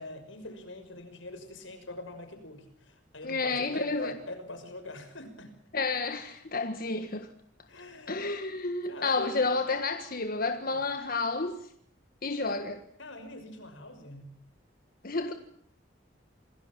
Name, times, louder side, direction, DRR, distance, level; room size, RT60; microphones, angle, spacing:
voice 1, 0.0-5.5 7.7-8.3 8.9-9.4 10.6-10.8 13.0-14.4, left 2 dB, 85° left, 6.0 m, -43 dB
voice 2, 3.2-4.1 5.7-7.3 8.1-11.6 12.2-12.8 15.0-15.3, left 3 dB, 50° left, 1.6 m, -30 dB
27.5 x 19.0 x 7.6 m
head